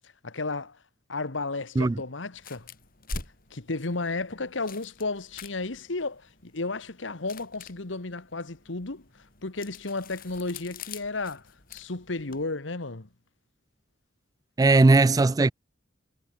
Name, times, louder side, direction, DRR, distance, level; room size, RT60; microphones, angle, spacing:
voice 1, 0.2-0.8 1.1-2.7 3.5-9.1 9.4-13.1, left 3 dB, 80° left, 1.6 m, -33 dB
sound 1, 2.3-12.4, left 3 dB, 50° left, 5.5 m, -45 dB
voice 2, 14.6-15.5, right 3 dB, 20° right, 0.3 m, -18 dB
head